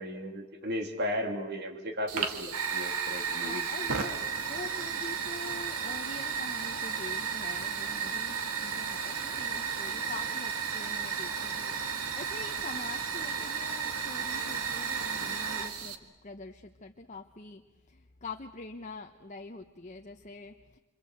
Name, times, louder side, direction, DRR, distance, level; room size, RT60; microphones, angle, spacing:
voice 1, 0.0-3.9, equal, 50° right, 5 dB, 3.0 m, -35 dB
Fire, 2.1-16.0, right 6 dB, 85° right, 2.0 m, -33 dB
voice 2, 3.4-20.8, left 3 dB, 35° left, 4 dB, 1.0 m, -45 dB
28.5 x 25.5 x 8.0 m, 1.2 s
head